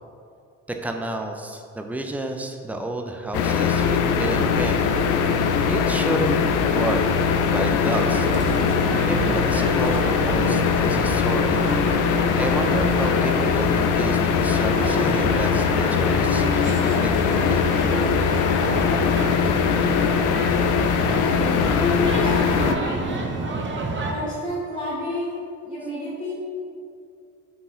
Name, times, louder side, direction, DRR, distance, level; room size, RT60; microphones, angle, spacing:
voice 1, 0.7-4.9 5.6-7.1 7.5-8.3 9.1-11.7 12.4-18.1, right 1 dB, 5° right, 4 dB, 0.5 m, -30 dB
sound 1, 3.3-22.8, left 6 dB, 90° left, 0.5 m, -21 dB
sound 2, 7.9-24.1, right 3 dB, 40° right, 0.8 m, -30 dB
voice 2, 21.0-23.4 24.1-26.3, left 1 dB, 25° left, -9 dB, 1.4 m, -31 dB
6.9 x 3.9 x 3.9 m, 2.4 s
cardioid pair, 90°, 30 cm